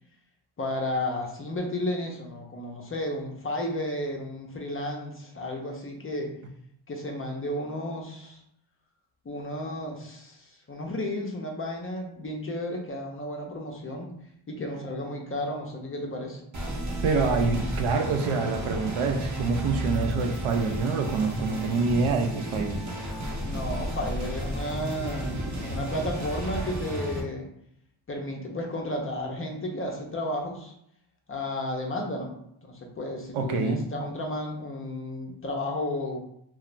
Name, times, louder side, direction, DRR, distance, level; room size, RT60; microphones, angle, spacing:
voice 1, 0.6-6.3 6.9-8.4 9.3-14.1 14.5-16.4 23.4-27.5 28.1-30.7 31.3-36.2, left 1 dB, 30° left, 0 dB, 0.4 m, -33 dB
sound 1, 16.5-27.2, equal, 35° right, 0.6 m, -33 dB
voice 2, 17.0-22.8 33.3-33.8, right 4 dB, 75° right, 5 dB, 0.6 m, -26 dB
2.4 x 2.0 x 3.0 m, 0.72 s
cardioid pair, 90°, 49 cm